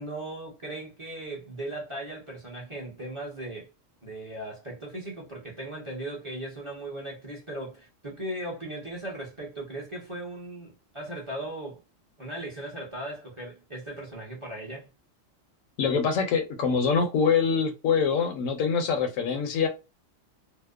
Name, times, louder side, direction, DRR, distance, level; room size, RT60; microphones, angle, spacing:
voice 1, 0.0-3.7 4.0-11.8 12.2-14.9, right 1 dB, 25° right, 0.8 m, -38 dB
voice 2, 15.8-19.7, left 6 dB, 75° left, 1.0 m, -24 dB
2.8 x 2.0 x 2.3 m
omnidirectional pair, 1.4 m